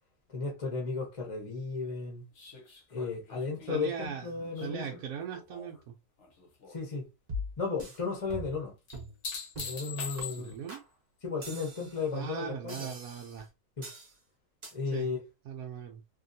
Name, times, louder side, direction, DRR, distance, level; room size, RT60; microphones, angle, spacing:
voice 1, 0.3-2.2 2.9-4.8 6.7-7.1 7.6-8.7 9.6-10.5 11.2-12.9 13.8-13.9 14.7-15.2, left 4 dB, 25° left, 0.7 m, -34 dB
sound 1, 2.4-5.8 6.2-6.8 8.9-10.8 13.4-13.5, left 6 dB, 55° left, 0.9 m, -43 dB
voice 2, 3.7-4.3 4.6-5.9 10.4-10.8 12.1-13.5 14.9-15.1 15.5-16.0, right 7 dB, 70° right, 1.0 m, -39 dB
sound 2, 7.3-8.0 8.3-8.7 8.9-9.2 9.6-9.8 10.2-10.3 10.7-10.8 11.4-12.1 12.7-13.4 13.8-14.1 14.6-14.7, left 1 dB, 35° right, 0.7 m, -41 dB
2.8 x 2.6 x 2.6 m
omnidirectional pair, 1.8 m